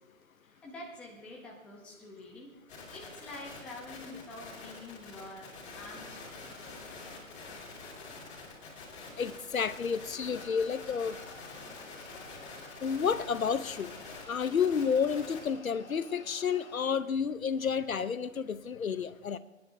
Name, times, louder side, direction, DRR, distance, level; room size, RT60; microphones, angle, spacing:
voice 1, 0.4-2.5 2.9-6.4, left 2 dB, 5° left, -3 dB, 0.8 m, -47 dB
sound 1, 2.7-15.5, left 3 dB, 40° left, 5.3 m, -47 dB
voice 2, 9.2-11.2 12.8-13.9 14.3-19.4, left 6 dB, 85° left, 14 dB, 0.9 m, -30 dB
sound 2, 10.1-16.9, left 4 dB, 55° left, 2.1 m, -53 dB
27.0 x 10.5 x 2.7 m, 1.0 s
hypercardioid pair, 150°, 40 cm